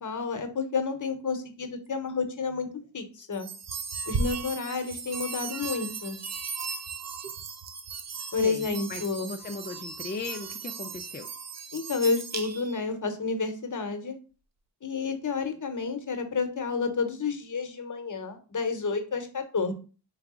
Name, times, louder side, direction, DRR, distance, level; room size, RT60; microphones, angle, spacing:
voice 1, 0.0-2.7 2.9-3.5 4.1-6.2 8.3-9.3 11.7-14.1 14.8-19.7, left 4 dB, 45° left, 7 dB, 0.9 m, -30 dB
sound 1, 3.3-12.9, right 4 dB, 35° right, 0.6 m, -36 dB
voice 2, 8.4-11.3, left 4 dB, 25° left, 5 dB, 0.4 m, -38 dB
4.7 x 2.3 x 3.7 m, 0.35 s
cardioid pair, 55°, 44 cm